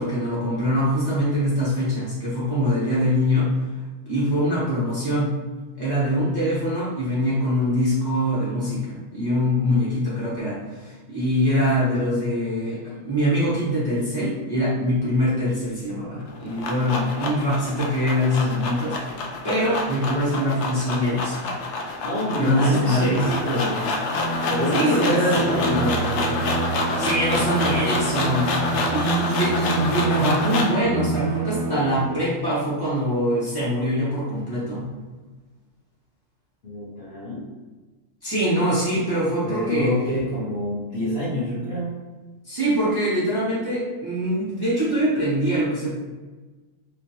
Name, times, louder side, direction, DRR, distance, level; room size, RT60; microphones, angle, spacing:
voice 1, 0.0-3.5 4.0-5.3 5.8-19.1 19.4-21.5 22.4-23.9 24.7-26.5 27.0-34.9 38.2-39.9 42.4-45.9, equal, 15° left, -10 dB, 1.5 m, -23 dB
sound 1, 16.2-30.8, left 3 dB, 75° left, 0.6 m, -28 dB
voice 2, 22.0-23.3 24.5-25.9 36.6-37.4 39.5-42.0, left 1 dB, 45° left, -11 dB, 1.1 m, -26 dB
Bowed string instrument, 23.9-32.5, right 3 dB, 65° right, 0.7 m, -28 dB
3.2 x 2.9 x 2.9 m, 1.2 s
omnidirectional pair, 1.7 m